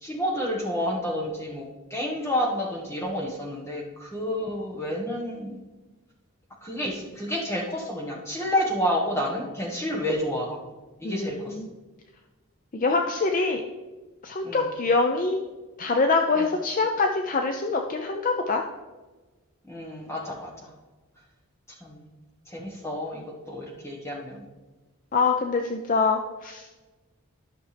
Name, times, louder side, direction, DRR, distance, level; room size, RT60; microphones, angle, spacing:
voice 1, 0.0-5.6 6.6-10.6 11.0-11.5 14.4-14.6 16.4-16.5 19.7-20.7 21.8-22.1 22.5-23.2 23.5-24.5, equal, 10° left, -2 dB, 1.4 m, -29 dB
voice 2, 11.0-11.7 12.7-13.6 14.2-15.4 15.8-18.6 25.1-26.6, left 3 dB, 40° left, 4 dB, 0.5 m, -24 dB
12.5 x 5.9 x 3.4 m, 1.2 s
head